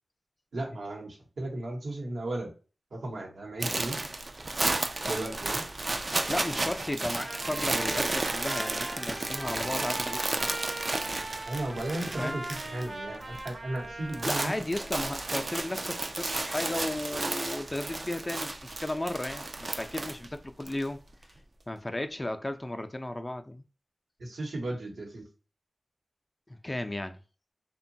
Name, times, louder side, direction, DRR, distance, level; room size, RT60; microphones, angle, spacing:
voice 1, 0.5-2.5 2.9-4.0 5.1-5.6 11.5-14.5 24.2-25.2, right 1 dB, 90° right, 0.9 m, -35 dB
sound 1, 3.6-12.9 13.1-13.5 13.8-20.8, right 2 dB, 50° right, 0.3 m, -33 dB
voice 2, 6.3-10.6 12.2-12.4 14.2-21.0 21.7-23.6 26.5-27.2, left 1 dB, 25° left, 0.4 m, -34 dB
Trumpet, 7.1-14.5, right 2 dB, 70° right, 0.9 m, -40 dB
2.9 x 2.2 x 2.6 m
cardioid pair, 50°, 0 cm